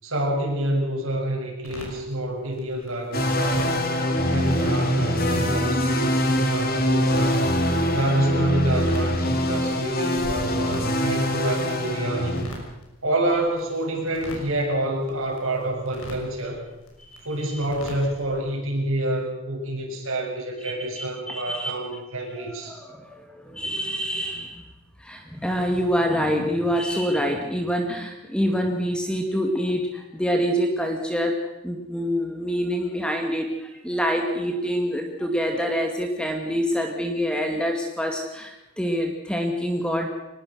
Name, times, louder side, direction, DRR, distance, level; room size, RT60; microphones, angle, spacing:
voice 1, 0.0-3.9 4.3-7.4 7.9-12.5 13.0-16.6 17.2-22.8, right 1 dB, 65° right, 0 dB, 7.1 m, -27 dB
sound 1, 1.6-18.4, left 1 dB, 75° left, 6.3 m, -44 dB
sound 2, 3.1-12.4, left 1 dB, 40° left, 2.8 m, -24 dB
voice 2, 21.0-21.8 22.4-24.6 25.0-40.1, equal, 5° left, 3 dB, 2.2 m, -26 dB
23.5 x 20.5 x 6.3 m, 1.0 s
head